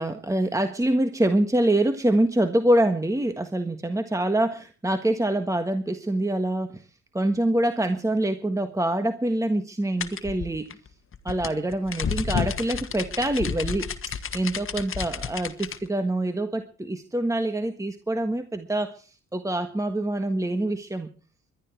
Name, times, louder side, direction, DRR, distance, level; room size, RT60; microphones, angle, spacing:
voice 1, 0.0-6.9 7.1-10.8 11.2-13.9 14.3-21.1, right 1 dB, 10° right, 8 dB, 1.5 m, -25 dB
sound 1, 10.0-15.8, left 6 dB, 45° left, 1.5 m, -31 dB
21.5 x 12.0 x 4.7 m, 0.38 s
cardioid pair, 90°, 30 cm